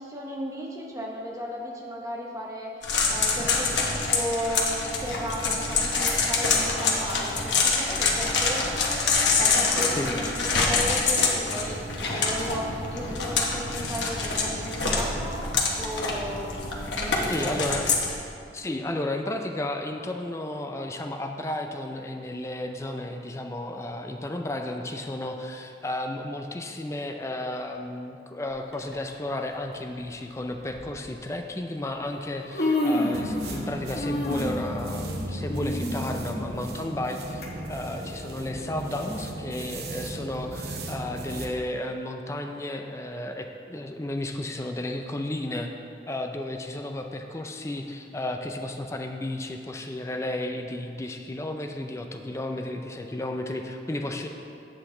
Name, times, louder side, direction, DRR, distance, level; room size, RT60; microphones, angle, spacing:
voice 1, 0.0-17.7, equal, 20° right, -2 dB, 0.9 m, -35 dB
sound 1, 2.8-18.1, left 4 dB, 85° left, 1.1 m, -26 dB
voice 2, 17.3-17.9 18.5-45.7 46.1-54.3, left 1 dB, 15° left, 4 dB, 0.4 m, -33 dB
Human voice, 28.7-28.9 30.0-30.1 30.7-30.9 31.9-32.0 32.3-33.7 33.9-37.5 37.9-38.0 38.8-38.9, left 1 dB, 60° left, 1.2 m, -29 dB
sound 2, 33.1-41.5, right 1 dB, 60° right, 0.8 m, -36 dB
8.1 x 7.9 x 3.8 m, 2.6 s
head